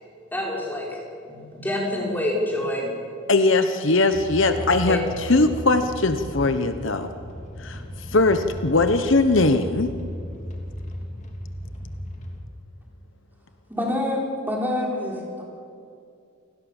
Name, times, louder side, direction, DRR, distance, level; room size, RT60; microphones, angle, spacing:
voice 1, 0.3-1.0 1.3-2.9 4.8-5.0, left 1 dB, 10° left, -3 dB, 5.3 m, -27 dB
voice 2, 3.3-7.1 7.6-7.8 8.1-9.9, left 3 dB, 65° left, 8 dB, 1.1 m, -20 dB
Car idle and turn off vintage MG convertable, 4.1-12.4, equal, 35° left, 2.8 m, -35 dB
voice 3, 13.7-15.4, left 1 dB, 10° right, -2 dB, 4.5 m, -26 dB
28.5 x 19.0 x 7.3 m, 2.5 s
head